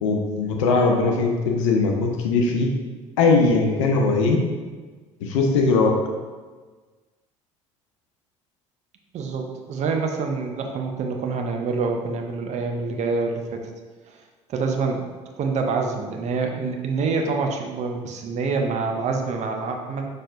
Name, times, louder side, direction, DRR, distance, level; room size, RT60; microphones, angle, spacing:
voice 1, 0.0-2.7 3.2-4.4 5.2-5.9, left 3 dB, 70° left, 2 dB, 0.7 m, -20 dB
voice 2, 9.1-13.7 14.1-14.2 14.5-15.1 15.4-20.0, right 4 dB, 45° right, 3 dB, 0.7 m, -26 dB
5.8 x 3.2 x 2.6 m, 1.4 s
figure-of-eight pair, 60°, 16 cm